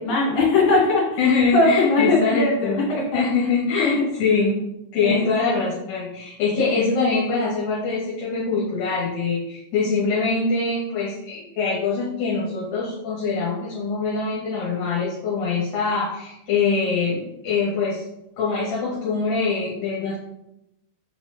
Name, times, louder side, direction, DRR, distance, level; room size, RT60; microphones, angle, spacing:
voice 1, 0.0-1.0 1.5-3.3 3.8-3.9 5.0-5.3, left 3 dB, 50° left, -4 dB, 3.8 m, -20 dB
voice 2, 1.2-2.9 3.1-4.6 4.9-18.0 18.4-20.2, left 4 dB, 65° left, -7 dB, 3.0 m, -23 dB
7.2 x 4.6 x 3.9 m, 0.86 s
omnidirectional pair, 4.6 m